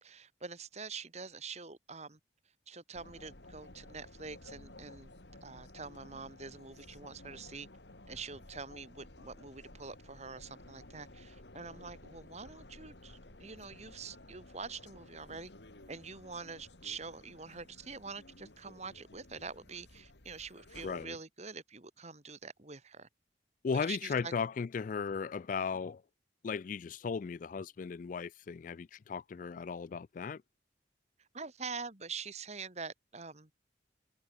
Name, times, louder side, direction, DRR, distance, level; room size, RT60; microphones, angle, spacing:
voice 1, 0.0-2.2 2.7-5.1 5.4-7.7 8.1-15.5 15.9-23.1 23.7-24.3 31.2-33.5, right 4 dB, 40° right, 2.3 m, -45 dB
sound 1, 2.9-21.1, left 1 dB, 75° left, 3.2 m, -54 dB
voice 2, 20.8-21.2 23.6-26.0 26.4-30.4, left 5 dB, 45° left, 0.3 m, -36 dB
head